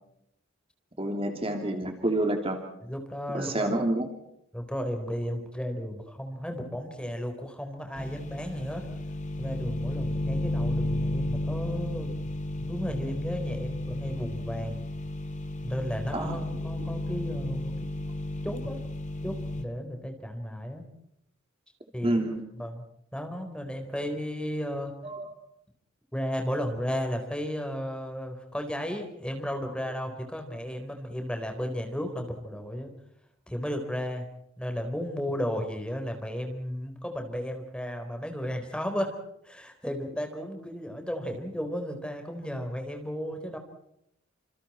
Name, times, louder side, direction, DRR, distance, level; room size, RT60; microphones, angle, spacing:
voice 1, 1.0-2.6 3.3-4.1 16.1-16.4 22.0-22.4 25.0-25.3, right 1 dB, 30° right, 4 dB, 2.9 m, -28 dB
voice 2, 2.8-3.7 4.5-8.9 9.4-14.8 15.6-17.7 18.4-18.8 19.2-20.8 21.9-22.2 22.6-22.8 23.1-24.9 26.1-32.9 33.5-34.3 34.6-39.1 39.4-43.6, equal, 5° left, 5 dB, 4.2 m, -34 dB
sound 1, 7.9-19.6, left 1 dB, 35° left, 2.4 m, -33 dB
29.0 x 27.5 x 4.4 m, 0.78 s
head